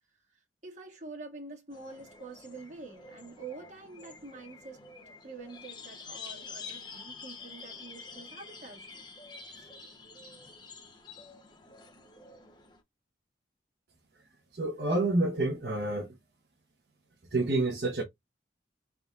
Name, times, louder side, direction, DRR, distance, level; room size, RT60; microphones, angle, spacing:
voice 1, 0.3-4.8 5.2-9.1 9.5-9.7, right 3 dB, 40° right, 1.8 m, -46 dB
sound 1, 1.7-12.8, left 4 dB, 25° left, 0.9 m, -48 dB
voice 2, 14.5-16.2 17.3-18.0, right 2 dB, 65° right, 1.0 m, -28 dB
4.1 x 3.7 x 2.4 m
head